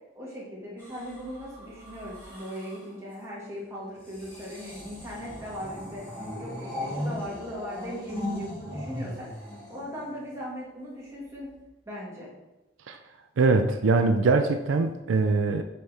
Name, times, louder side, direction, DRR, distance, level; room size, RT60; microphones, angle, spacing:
voice 1, 0.1-6.0 6.4-9.3 9.7-11.5 11.8-12.3, equal, 15° right, -6 dB, 1.7 m, -39 dB
sound 1, 0.8-2.9 4.0-10.4 11.3-11.6, left 1 dB, 10° left, 1.9 m, -38 dB
voice 2, 13.4-15.6, right 3 dB, 80° right, 6 dB, 0.4 m, -22 dB
7.0 x 4.1 x 3.4 m, 0.99 s
head